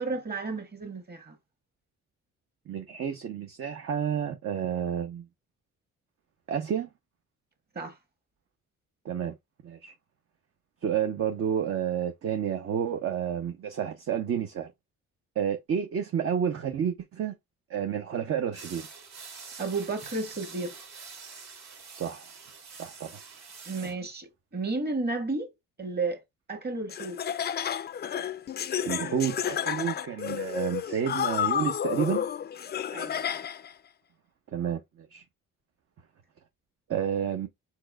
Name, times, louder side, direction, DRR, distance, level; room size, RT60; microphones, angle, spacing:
voice 1, 0.0-1.4 7.7-8.0 19.6-20.8 23.7-25.5 25.8-26.2 26.5-27.2 32.9-33.4, right 3 dB, 35° right, 1.6 m, -32 dB
voice 2, 2.7-5.3 6.5-6.9 9.0-9.4 9.6-9.9 10.8-14.7 15.4-17.3 17.7-18.9 22.0-22.3 22.8-23.2 23.8-23.9 28.8-32.3 34.5-35.2 36.9-37.5, right 8 dB, 50° right, 0.8 m, -30 dB
sound 1, 18.5-23.9, right 5 dB, 65° right, 2.2 m, -46 dB
Laughter, 26.9-33.7, left 9 dB, 35° left, 0.4 m, -31 dB
4.6 x 4.1 x 2.2 m
cardioid pair, 90°, 30 cm